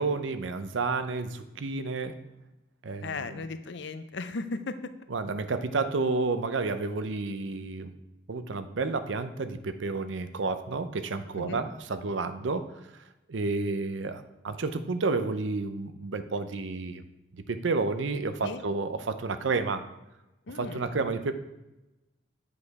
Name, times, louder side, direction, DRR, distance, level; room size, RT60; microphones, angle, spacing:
voice 1, 0.0-2.2 2.8-3.1 5.1-7.9 8.3-12.7 13.3-17.0 17.5-19.9 20.6-21.3, right 3 dB, 75° right, 11 dB, 0.6 m, -30 dB
voice 2, 3.0-4.9 11.3-11.6 18.4-18.6 20.5-20.9, left 3 dB, 65° left, 11 dB, 0.6 m, -36 dB
8.6 x 5.0 x 4.7 m, 0.98 s
head